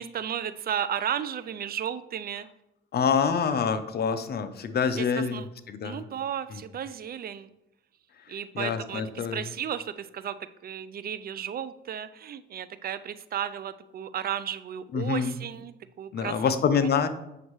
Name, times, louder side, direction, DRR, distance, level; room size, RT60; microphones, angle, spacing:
voice 1, 0.0-2.5 5.0-5.4 5.8-7.5 8.3-9.0 9.3-10.4 10.6-16.4 16.8-16.9, right 9 dB, 50° right, 14 dB, 0.4 m, -34 dB
voice 2, 2.9-6.0 6.5-6.6 8.3-9.4 14.9-15.3 16.1-17.1, left 6 dB, 55° left, 10 dB, 0.7 m, -26 dB
7.9 x 6.3 x 3.1 m, 0.89 s
cardioid pair, 90°, 20 cm